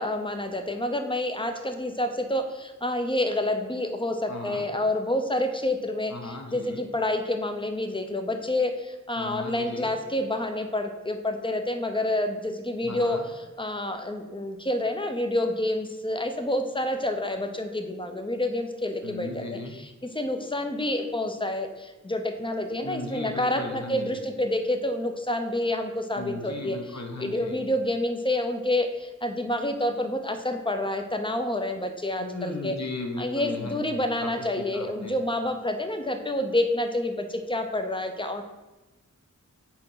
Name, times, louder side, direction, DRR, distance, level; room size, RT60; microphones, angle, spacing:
voice 1, 0.0-13.2 13.6-19.9 20.1-32.7 33.2-38.4, left 1 dB, 15° left, 6 dB, 0.7 m, -28 dB
voice 2, 4.3-4.7 6.1-6.8 9.2-9.9 12.8-13.3 19.0-19.7 22.8-24.2 26.1-27.6 32.2-35.2, left 2 dB, 60° left, 2 dB, 1.1 m, -36 dB
4.5 x 4.3 x 5.7 m, 1.1 s
wide cardioid pair, 60°, 31 cm